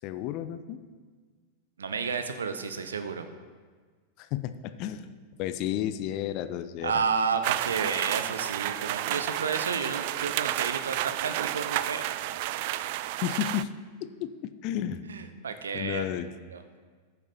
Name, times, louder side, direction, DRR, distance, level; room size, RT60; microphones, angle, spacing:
voice 1, 0.0-0.8 4.2-5.1 5.4-7.0 13.2-13.7 14.0-15.0 15.7-16.3, left 11 dB, 40° left, 11 dB, 0.6 m, -32 dB
voice 2, 1.8-3.3 6.8-12.1 15.1-16.1 16.5-16.6, right 5 dB, 70° right, 9 dB, 0.8 m, -31 dB
sound 1, 7.4-13.6, right 15 dB, 50° right, 0.3 m, -31 dB
14.5 x 6.8 x 4.3 m, 1.5 s
figure-of-eight pair, 90°, 0 cm